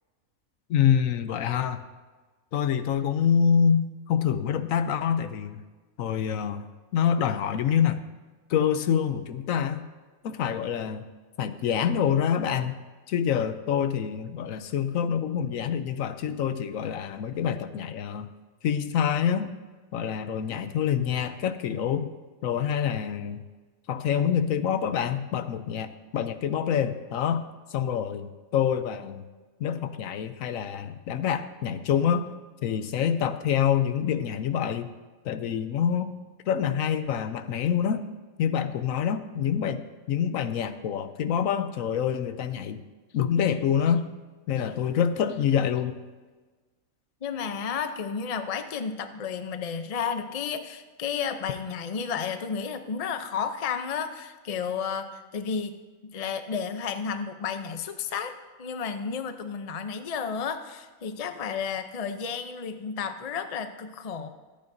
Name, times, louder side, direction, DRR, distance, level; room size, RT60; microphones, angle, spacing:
voice 1, 0.7-1.8 2.5-5.6 6.0-6.6 6.9-8.0 8.5-9.9 10.2-11.1 11.4-12.7 13.1-18.3 18.6-19.5 19.9-22.1 22.4-23.4 23.9-27.4 27.7-29.2 29.6-32.3 32.6-34.9 35.2-36.1 36.5-38.0 38.4-42.8 43.1-44.1 44.5-46.0, left 8 dB, 75° left, 10 dB, 1.0 m, -26 dB
voice 2, 47.2-55.8 56.0-58.3 58.6-64.3, left 6 dB, 40° left, 8 dB, 0.5 m, -32 dB
24.5 x 8.8 x 2.7 m, 1.3 s
omnidirectional pair, 1.5 m